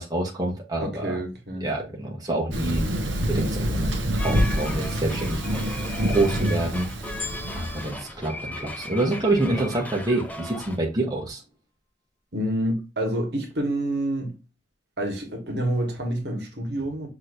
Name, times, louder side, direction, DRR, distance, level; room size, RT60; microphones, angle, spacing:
voice 1, 0.0-1.2 1.6-2.8 3.2-5.7 6.1-6.9 7.5-11.4, right 2 dB, 20° right, 1.1 m, -27 dB
voice 2, 0.8-1.7 12.3-14.3 15.0-17.1, right 1 dB, 60° right, 1.5 m, -28 dB
Thunder, 2.5-7.9, equal, 85° right, 0.9 m, -26 dB
sound 1, 4.2-10.8, left 1 dB, 10° left, 0.5 m, -37 dB
sound 2, 7.2-9.6 10.2-10.3, left 4 dB, 40° left, 2.3 m, -41 dB
6.1 x 3.0 x 2.6 m
head